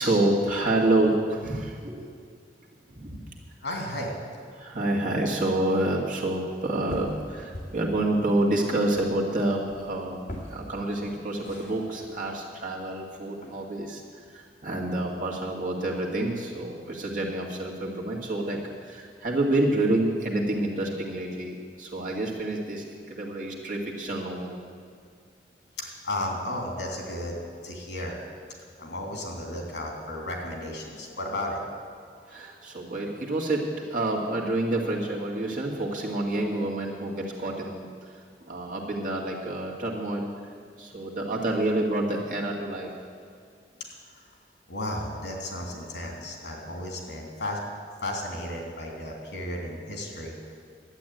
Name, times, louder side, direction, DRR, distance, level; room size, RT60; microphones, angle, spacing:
voice 1, 0.0-2.0 2.9-3.2 4.5-14.0 14.3-24.6 32.3-37.9 38.4-40.3 40.8-42.9, right 1 dB, 45° right, -2 dB, 2.0 m, -28 dB
voice 2, 3.6-4.1 25.8-28.2 28.8-31.6 44.7-47.6 48.0-50.5, left 1 dB, 80° left, 1 dB, 3.1 m, -34 dB
sound 1, 6.5-13.6, left 1 dB, 45° left, 2.6 m, -44 dB
11.5 x 8.5 x 9.2 m, 2.3 s
head